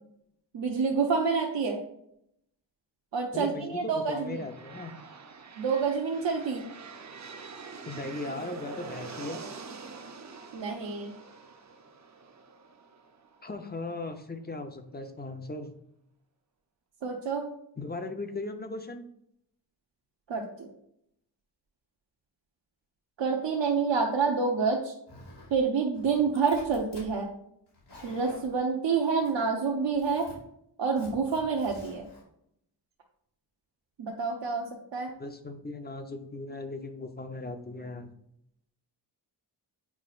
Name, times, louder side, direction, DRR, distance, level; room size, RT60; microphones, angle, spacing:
voice 1, 0.5-1.8 3.1-4.4 5.6-6.6 10.5-11.1 17.0-17.4 20.3-20.7 23.2-24.9 25.5-27.3 28.0-30.3 30.8-32.1 34.0-35.1, right 5 dB, 75° right, -1 dB, 0.9 m, -28 dB
voice 2, 3.3-4.9 7.8-9.4 13.4-15.7 17.8-19.0 35.2-38.1, left 2 dB, 20° left, 6 dB, 0.7 m, -38 dB
sound 1, 4.0-13.8, right 4 dB, 40° right, 0.7 m, -45 dB
Zipper (clothing), 25.1-25.6 25.9-27.1 27.7-28.5 29.2-29.6 29.9-30.3 31.0-32.2, left 2 dB, 65° left, 2.6 m, -49 dB
8.4 x 4.9 x 2.5 m, 0.74 s
wide cardioid pair, 90°, 44 cm